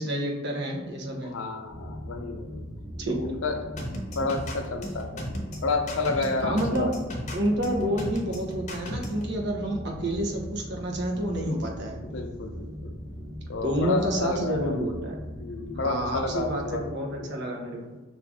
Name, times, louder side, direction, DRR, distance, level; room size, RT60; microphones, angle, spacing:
voice 1, 0.0-1.3 3.0-3.2 6.4-6.9 7.3-12.0 13.6-15.2 15.8-17.8, right 1 dB, 55° right, 0 dB, 0.8 m, -29 dB
voice 2, 1.2-2.6 3.2-3.6 3.9-5.3 5.6-6.9 12.0-13.0 13.5-14.8 15.4-17.3, left 3 dB, 80° left, 5 dB, 0.5 m, -31 dB
sound 1, 1.7-16.7, equal, 30° right, 1.0 m, -39 dB
sound 2, 3.8-9.2, equal, 35° left, 0.7 m, -35 dB
5.5 x 2.5 x 3.5 m, 1.2 s
head